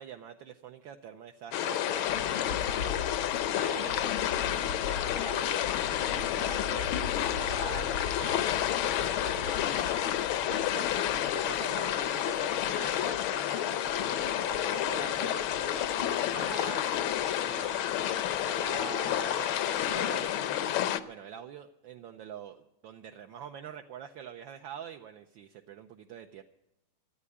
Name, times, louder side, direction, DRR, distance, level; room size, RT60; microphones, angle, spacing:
voice 1, 0.0-3.0 3.6-5.7 6.0-6.9 7.3-16.8 17.4-26.4, right 9 dB, 70° right, 5 dB, 1.3 m, -45 dB
sound 1, 1.5-21.0, left 11 dB, 75° left, 1.5 m, -30 dB
13.5 x 9.4 x 9.7 m, 0.89 s
omnidirectional pair, 2.4 m